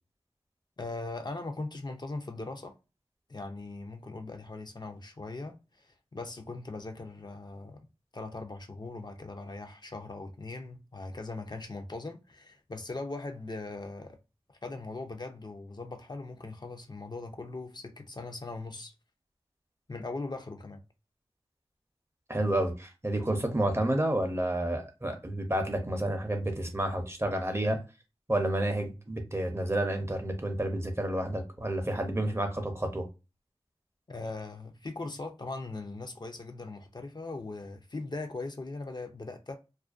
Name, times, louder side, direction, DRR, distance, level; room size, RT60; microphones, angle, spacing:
voice 1, 0.8-2.7 3.3-7.8 8.1-14.2 14.5-18.9 19.9-20.8 34.1-39.6, left 3 dB, 40° left, 0.5 m, -40 dB
voice 2, 22.3-27.8 28.3-33.1, right 1 dB, 25° right, 0.6 m, -30 dB
2.4 x 2.1 x 2.4 m
wide cardioid pair, 45°, 11 cm